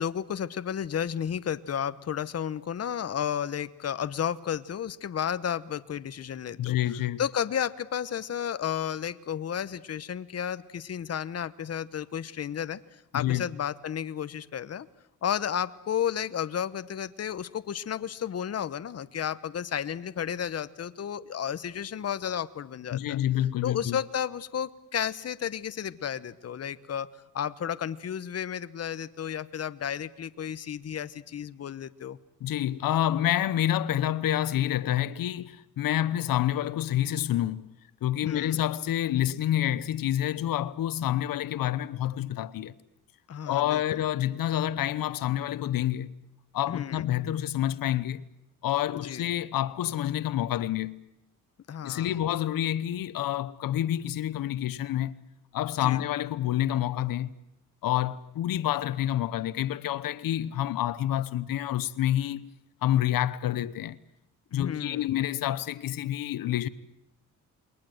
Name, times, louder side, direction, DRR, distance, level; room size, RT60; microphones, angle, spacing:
voice 1, 0.0-6.8 7.2-12.8 13.1-14.9 15.2-23.2 23.6-27.1 27.3-32.2 38.2-38.6 43.3-43.8 46.7-47.1 49.0-49.3 51.7-52.1 55.8-56.0 64.5-65.1, left 8 dB, 45° left, 1.0 m, -32 dB
voice 2, 6.6-7.2 13.1-13.5 22.9-24.0 32.4-37.7 38.0-42.8 43.5-46.1 46.5-48.2 48.6-51.0 51.8-55.1 55.5-57.3 57.8-62.5 62.8-64.0 64.5-66.7, left 12 dB, 90° left, 0.9 m, -28 dB
29.0 x 22.0 x 7.9 m
cardioid pair, 115°, 33 cm